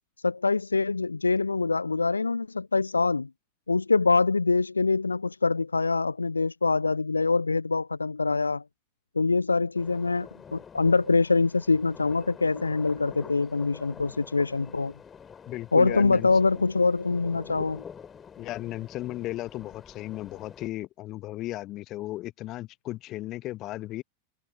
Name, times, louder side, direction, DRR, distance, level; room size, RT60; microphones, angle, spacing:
voice 1, 0.2-3.3 3.7-8.6 9.2-14.9 15.7-17.8, left 3 dB, 80° left, 0.3 m, -24 dB
sound 1, 9.8-20.7, left 7 dB, 20° left, 4.2 m, -47 dB
voice 2, 15.5-16.3 18.4-24.0, left 16 dB, 35° left, 1.3 m, -35 dB
figure-of-eight pair, 90°, 0 cm